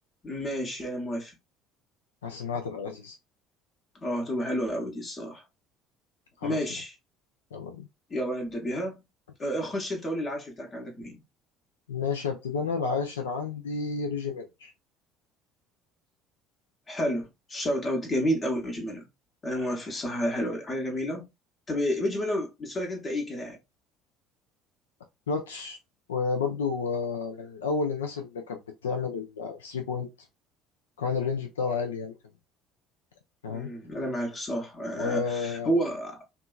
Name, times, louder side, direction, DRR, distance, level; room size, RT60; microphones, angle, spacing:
voice 1, 0.2-1.4 4.0-5.4 6.4-6.9 8.1-9.0 9.4-11.2 16.9-19.1 19.4-21.2 21.7-23.6 33.5-36.2, equal, 30° left, 0.8 m, -30 dB
voice 2, 2.2-3.1 6.4-6.6 7.5-7.9 11.9-14.7 25.3-25.8 26.1-30.1 31.0-32.1 33.4-33.7 35.0-35.7, left 5 dB, 80° left, 0.4 m, -31 dB
2.7 x 2.3 x 2.3 m
figure-of-eight pair, 60°, 0 cm